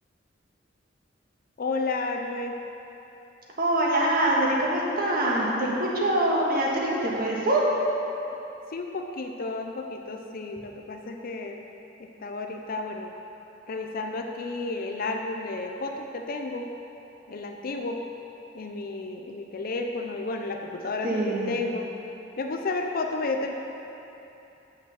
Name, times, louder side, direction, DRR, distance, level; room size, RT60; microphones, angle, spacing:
voice 1, 1.6-2.6 8.7-11.7 12.0-13.1 13.7-16.7 17.3-18.0 18.5-21.9 22.4-23.5, left 3 dB, 50° left, 3 dB, 0.5 m, -32 dB
voice 2, 3.6-7.7 21.0-21.6, right 1 dB, 50° right, -3 dB, 1.5 m, -24 dB
6.7 x 6.4 x 6.9 m, 3.0 s
head